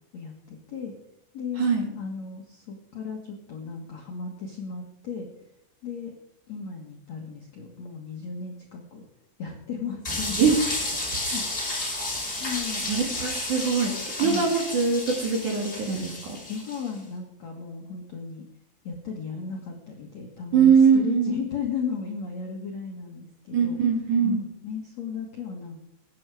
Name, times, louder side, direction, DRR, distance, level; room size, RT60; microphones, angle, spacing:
voice 1, 0.1-0.9 1.3-1.7 2.0-5.3 5.8-6.1 6.5-9.0 9.4-10.4 11.1-11.5 12.3-12.9 14.2-14.5 16.5-18.5 18.8-23.8 24.2-25.8, left 5 dB, 55° left, 1 dB, 1.9 m, -35 dB
voice 2, 1.6-1.9 10.4-10.5 10.8-11.4 12.9-13.9 14.2-16.1 20.5-21.3 23.5-24.4, right 6 dB, 50° right, 2 dB, 3.2 m, -22 dB
sound 1, 10.0-16.9, left 2 dB, 15° left, 5.1 m, -32 dB
21.5 x 9.7 x 4.9 m, 0.78 s
omnidirectional pair, 5.4 m